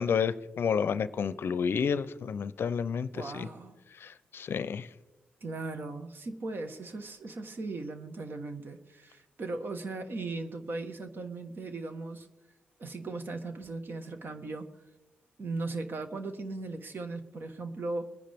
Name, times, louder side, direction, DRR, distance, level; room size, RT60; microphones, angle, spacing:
voice 1, 0.0-3.5 4.0-4.9, left 6 dB, 65° left, 15 dB, 0.5 m, -30 dB
voice 2, 3.1-3.8 5.4-12.3 12.8-14.7 15.4-18.1, right 3 dB, 55° right, 7 dB, 1.4 m, -38 dB
21.5 x 10.0 x 3.5 m, 1.1 s
cardioid pair, 60°, 4 cm